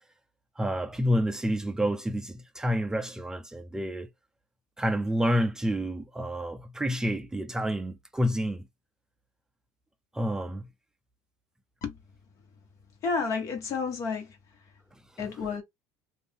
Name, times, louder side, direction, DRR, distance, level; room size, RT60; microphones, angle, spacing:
voice 1, 0.6-4.1 4.8-8.7 10.1-10.7, equal, 10° right, 0.4 m, -29 dB
voice 2, 13.0-14.7 15.2-15.6, left 5 dB, 55° left, 1.4 m, -31 dB
2.6 x 2.6 x 3.5 m
supercardioid pair, 105°, 6 cm